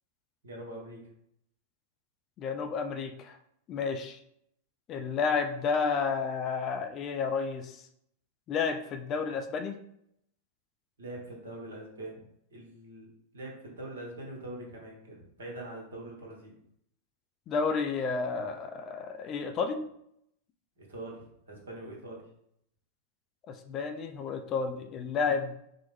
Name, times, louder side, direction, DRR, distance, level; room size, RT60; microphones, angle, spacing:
voice 1, 0.4-1.0 11.0-12.2 12.5-13.1 13.3-16.5 20.8-22.2, right 1 dB, 65° right, -2 dB, 1.1 m, -43 dB
voice 2, 2.4-3.4 3.7-4.2 4.9-7.8 8.5-9.7 17.5-19.8 23.5-25.5, left 5 dB, 30° left, 5 dB, 0.4 m, -31 dB
4.4 x 2.0 x 3.1 m, 0.74 s
figure-of-eight pair, 90°, 0 cm